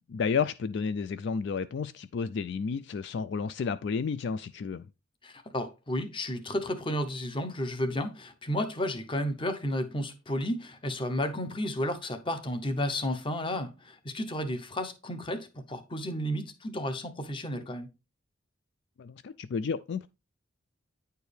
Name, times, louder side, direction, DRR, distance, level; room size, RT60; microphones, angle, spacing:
voice 1, 0.1-4.9 19.0-20.1, left 5 dB, 60° left, 0.3 m, -31 dB
voice 2, 5.2-17.9, left 1 dB, 25° left, 0.7 m, -32 dB
9.3 x 4.5 x 3.3 m
head